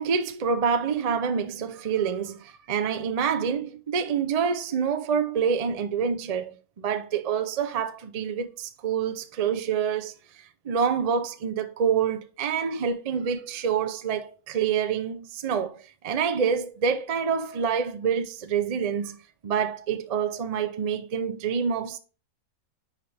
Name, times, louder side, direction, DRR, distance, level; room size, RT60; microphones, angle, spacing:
voice 1, 0.0-10.1 10.6-19.2 19.4-22.0, right 7 dB, 50° right, 0.4 m, -27 dB
10.0 x 4.2 x 3.3 m
omnidirectional pair, 1.6 m